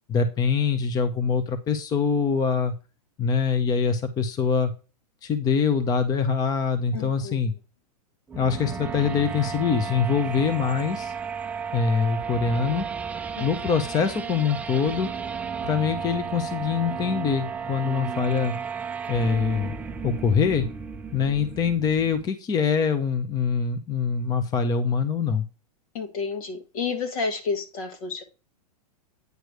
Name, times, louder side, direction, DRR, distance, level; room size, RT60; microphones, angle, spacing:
voice 1, 0.1-2.7 3.2-4.7 5.2-7.5 8.3-11.1 11.7-12.9 13.4-15.1 15.6-18.6 19.1-19.7 20.0-20.7 21.1-25.4, left 6 dB, 20° left, 0.7 m, -24 dB
voice 2, 6.9-7.4 13.4-13.5 25.9-28.2, left 4 dB, 60° left, 2.1 m, -30 dB
sound 1, 8.3-22.3, right 6 dB, 5° right, 0.3 m, -33 dB
9.3 x 3.2 x 6.4 m
hypercardioid pair, 140°, 20 cm